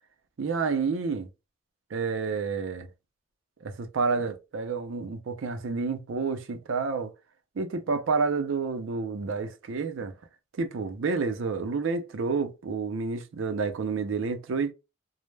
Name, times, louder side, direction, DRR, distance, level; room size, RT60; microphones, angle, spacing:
voice 1, 0.4-1.3 1.9-2.9 3.6-7.1 7.6-10.1 10.6-14.7, right 4 dB, 75° right, 0.4 m, -29 dB
2.2 x 2.0 x 3.1 m
head